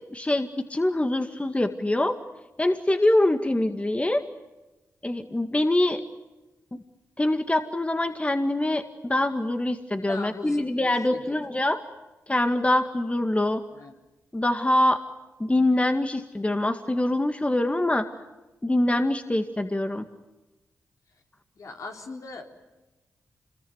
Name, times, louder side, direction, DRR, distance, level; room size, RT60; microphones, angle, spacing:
voice 1, 0.1-2.1 2.6-4.2 5.0-6.0 6.7-6.8 7.2-11.8 12.3-13.6 14.3-15.0 15.4-18.1 18.6-20.0, left 1 dB, 20° left, 7 dB, 2.0 m, -24 dB
voice 2, 10.1-11.4 13.7-13.9 21.6-22.6, left 3 dB, 65° left, 2 dB, 4.2 m, -40 dB
27.0 x 21.5 x 9.6 m, 1.1 s
supercardioid pair, 45°, 6 cm